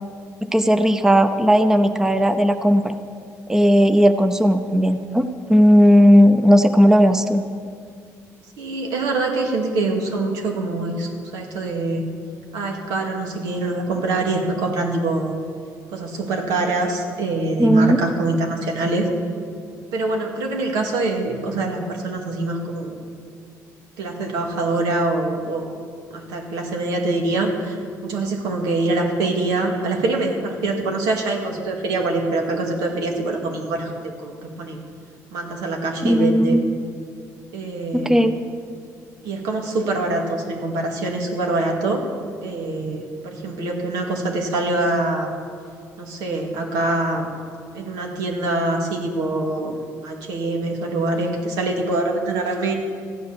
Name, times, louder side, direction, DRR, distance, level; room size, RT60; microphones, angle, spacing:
voice 1, 0.4-2.9 3.5-7.4 17.6-18.0 36.0-36.6 37.9-38.4, equal, 5° right, 9 dB, 0.7 m, -16 dB
voice 2, 8.6-12.0 12.5-15.3 15.9-19.1 19.9-23.0 24.0-25.8 26.1-34.8 35.3-36.6 37.5-38.3 39.2-42.0 42.4-45.3 46.0-47.3 47.7-49.8 50.0-52.7, right 2 dB, 90° right, 1 dB, 2.2 m, -24 dB
14.5 x 9.5 x 7.1 m, 2.2 s
cardioid pair, 100°, 7 cm